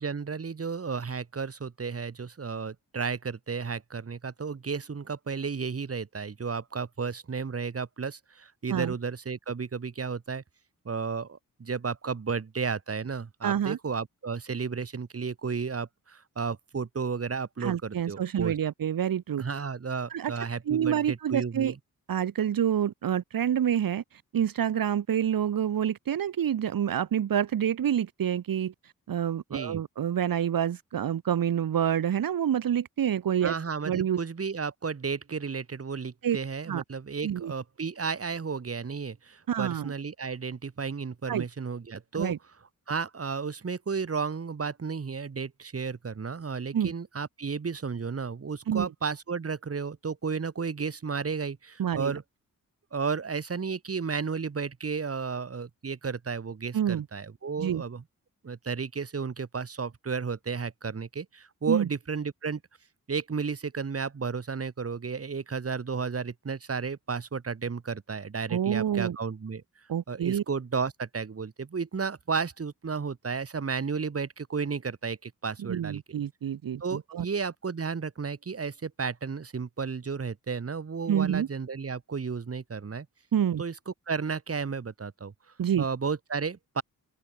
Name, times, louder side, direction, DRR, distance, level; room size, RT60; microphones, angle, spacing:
voice 1, 0.0-10.4 10.8-18.5 19.4-21.8 29.5-29.8 33.4-42.3 42.9-52.2 52.9-58.0 58.4-62.6 63.1-69.6 70.1-76.0 76.8-83.1 83.6-85.3 85.8-86.8, right 5 dB, 45° right, 6.3 m, -33 dB
voice 2, 13.4-13.8 17.6-19.4 20.1-20.3 20.7-21.7 22.1-33.5 33.8-34.2 36.2-36.4 36.7-36.8 37.2-37.5 39.5-39.9 41.3-41.4 42.1-42.4 46.7-46.9 48.7-48.9 51.8-52.1 56.7-57.1 57.6-57.8 61.7-61.9 68.5-69.2 69.9-70.4 75.6-77.3 81.1-81.5 83.3-83.6 85.6-85.9, right 9 dB, 80° right, 2.7 m, -27 dB
open air
wide cardioid pair, 120°, 34 cm